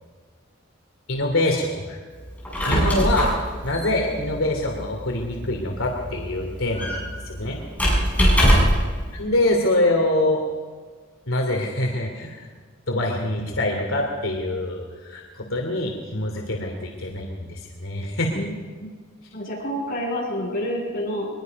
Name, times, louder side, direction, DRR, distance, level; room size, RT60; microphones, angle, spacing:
voice 1, 1.1-2.0 2.7-3.3 3.6-7.0 7.2-7.6 9.1-10.4 11.3-12.5 12.9-18.3, left 1 dB, 85° left, 1 dB, 2.9 m, -25 dB
Squeak, 2.3-8.9, equal, 10° left, 6.9 m, -22 dB
voice 2, 2.7-3.1 8.2-8.8 18.3-18.6 19.3-21.3, equal, 45° left, -4 dB, 7.6 m, -29 dB
23.0 x 21.5 x 5.3 m, 1.5 s
head